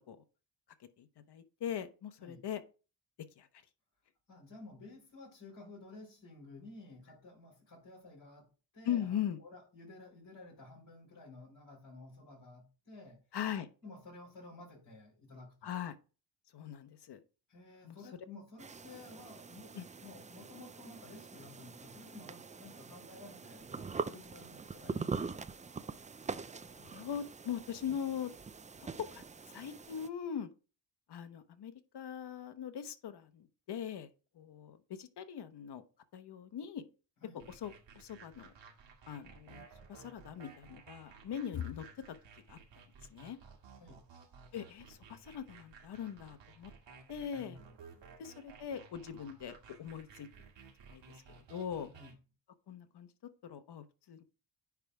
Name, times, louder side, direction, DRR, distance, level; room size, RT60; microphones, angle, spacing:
voice 1, 1.0-2.6 3.4-3.5 8.8-9.4 13.3-13.7 15.6-15.9 16.5-17.2 17.8-18.0 19.8-19.9 26.6-28.3 28.8-29.2 29.5-30.5 31.1-34.1 34.3-35.8 36.1-36.8 37.5-38.5 39.1-41.9 42.5-42.6 43.1-43.4 44.5-46.7 47.1-47.6 48.2-50.3 50.9-51.0 51.4-51.9 52.7-53.1 53.4-54.2, left 9 dB, 65° left, 1.0 m, -41 dB
voice 2, 4.3-13.2 13.8-15.8 17.5-25.6 37.2-37.5 43.8-44.0 47.3-48.1 51.9-52.1, left 2 dB, 50° left, 4.8 m, -53 dB
sound 1, 18.6-30.1, right 5 dB, 20° right, 0.3 m, -43 dB
sound 2, 37.4-52.1, right 5 dB, 85° right, 1.9 m, -56 dB
9.7 x 3.5 x 4.8 m
cardioid pair, 115°, 43 cm